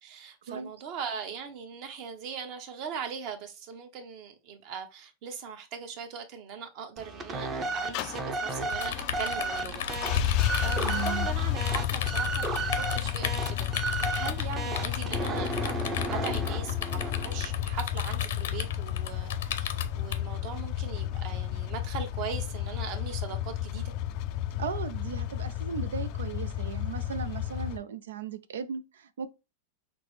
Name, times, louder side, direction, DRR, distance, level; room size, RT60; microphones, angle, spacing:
voice 1, 0.0-15.5 16.1-23.9, right 6 dB, 45° right, 1.0 m, -40 dB
sound 1, 7.0-17.5, right 3 dB, 25° right, 0.7 m, -34 dB
sound 2, 7.9-27.8, left 12 dB, 50° left, 0.3 m, -32 dB
sound 3, 8.7-20.2, left 8 dB, 80° left, 0.7 m, -36 dB
voice 2, 10.8-11.3 24.6-29.3, right 7 dB, 90° right, 0.4 m, -37 dB
5.8 x 2.1 x 3.2 m
supercardioid pair, 135°, 0 cm